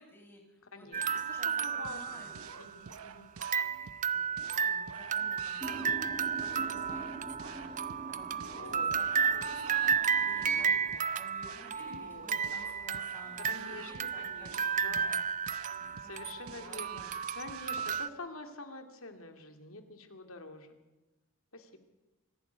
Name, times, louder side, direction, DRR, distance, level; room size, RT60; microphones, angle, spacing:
voice 1, 0.0-2.4 4.4-7.1 7.4-10.7 11.1-15.3 15.8-16.2 16.4-17.2, left 1 dB, 10° left, -1 dB, 6.6 m, -53 dB
voice 2, 0.7-2.3 2.6-3.3 5.3-5.5 8.4-8.9 10.3-10.9 11.8-12.3 13.5-15.1 16.0-20.8 21.5-21.8, left 2 dB, 70° left, 6 dB, 2.5 m, -47 dB
sound 1, 0.9-2.9 3.4-18.1, right 7 dB, 35° right, 0.6 m, -33 dB
sound 2, 1.8-18.1, right 6 dB, 80° right, 1.0 m, -50 dB
sound 3, 5.6-10.9, right 2 dB, 15° right, 1.8 m, -46 dB
25.0 x 11.5 x 9.5 m, 1.1 s
head